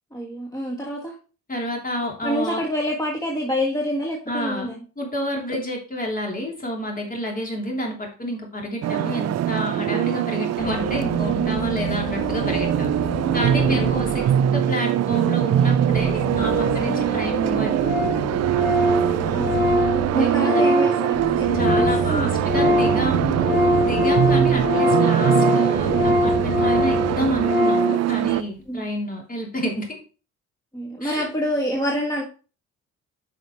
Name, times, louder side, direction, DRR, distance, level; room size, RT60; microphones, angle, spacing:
voice 1, 0.1-1.1 2.2-4.8 13.5-14.2 16.8-17.0 19.0-19.6 20.1-21.5 21.8-22.4 28.7-28.8 30.7-32.2, equal, 10° left, -2 dB, 1.9 m, -27 dB
voice 2, 1.5-2.6 4.3-4.7 5.0-12.9 13.3-18.2 20.1-20.7 21.5-23.5 23.8-30.0 31.0-31.3, equal, 30° left, 0 dB, 3.1 m, -29 dB
sound 1, 8.8-28.4, right 11 dB, 60° right, 0.5 m, -22 dB
sound 2, 10.6-14.8 15.9-20.5 21.1-25.1 25.7-27.4, left 2 dB, 55° left, 2.6 m, -32 dB
Organ, 16.9-17.0 17.2-17.3 17.5-17.6 17.8-18.2 18.5-22.1 22.4-28.0, left 1 dB, 40° right, 3.5 m, -22 dB
9.5 x 5.8 x 3.1 m, 0.36 s
cardioid pair, 90°, 30 cm